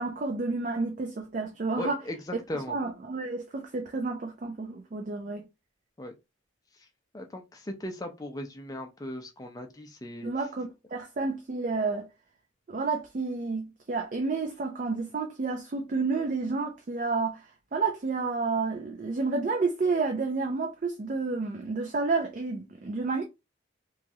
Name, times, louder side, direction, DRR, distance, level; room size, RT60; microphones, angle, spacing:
voice 1, 0.0-2.0 2.7-5.5 10.2-12.1 12.7-23.2, right 4 dB, 40° right, 0.4 m, -30 dB
voice 2, 1.8-2.2 2.5-2.8 6.0-6.1 7.1-10.3, left 1 dB, 20° left, 0.5 m, -37 dB
3.0 x 2.3 x 2.6 m
head